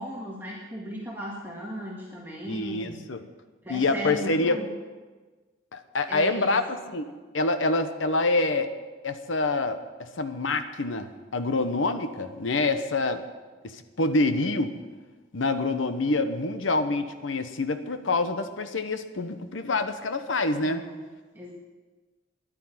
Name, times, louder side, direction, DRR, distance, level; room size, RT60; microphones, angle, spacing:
voice 1, 0.0-3.0 3.6-4.7 6.1-6.6 20.6-21.0 21.3-21.5, equal, 10° right, -4 dB, 1.8 m, -37 dB
voice 2, 2.5-3.2 3.7-4.6 5.7-7.0 7.3-8.7 9.0-9.8 10.2-13.2 13.6-14.7 15.3-20.8, left 2 dB, 85° left, 9 dB, 1.0 m, -26 dB
11.0 x 10.0 x 9.4 m, 1.3 s
head